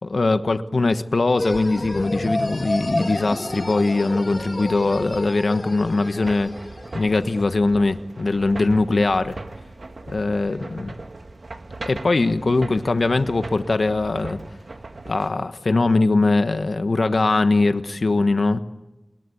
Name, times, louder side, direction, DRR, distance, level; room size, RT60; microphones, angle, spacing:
voice 1, 0.0-6.5 6.9-9.4 10.1-10.9 11.9-14.4 15.1-18.6, left 3 dB, 75° left, 1.3 m, -21 dB
sound 1, 1.4-7.4, left 1 dB, 30° left, 2.4 m, -30 dB
escalator-close, 6.2-15.3, right 2 dB, 65° right, 1.7 m, -39 dB
27.0 x 22.0 x 8.5 m
wide cardioid pair, 65°, 0 cm